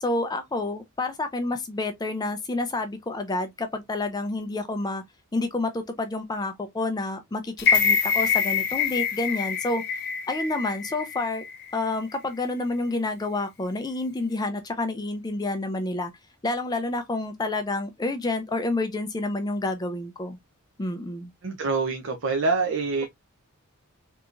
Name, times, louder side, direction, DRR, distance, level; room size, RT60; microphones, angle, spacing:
voice 1, 0.0-5.0 5.3-9.8 10.3-11.4 11.7-16.1 16.4-20.4 20.8-21.3, left 2 dB, 20° left, 0.4 m, -29 dB
sound 1, 7.6-11.7 12.1-12.2, left 6 dB, 50° left, 0.7 m, -25 dB
voice 2, 21.4-23.0, right 4 dB, 55° right, 0.6 m, -25 dB
3.6 x 2.9 x 2.4 m
head